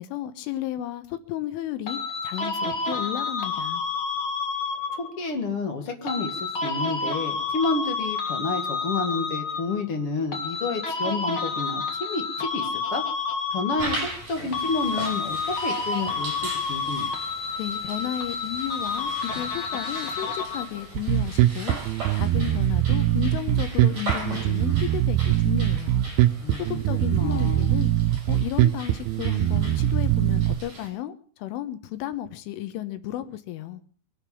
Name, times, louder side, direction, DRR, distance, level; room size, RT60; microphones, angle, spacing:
voice 1, 0.0-3.8 17.6-21.8 22.1-26.1 26.6-27.9 28.3-33.8, left 13 dB, 85° left, 11 dB, 3.7 m, -33 dB
sound 1, 1.9-5.2 6.1-9.9 10.3-14.2 14.5-20.9, left 4 dB, 70° left, 1.2 m, -30 dB
voice 2, 5.0-13.0 13.5-17.1 26.4-27.7, left 3 dB, 45° left, 5 dB, 1.9 m, -30 dB
sound 2, 13.8-30.9, right 2 dB, 40° right, 6.5 m, -39 dB
Bass guitar, 20.9-30.5, right 14 dB, 80° right, 2.2 m, -22 dB
24.0 x 8.3 x 7.1 m, 0.43 s
omnidirectional pair, 5.5 m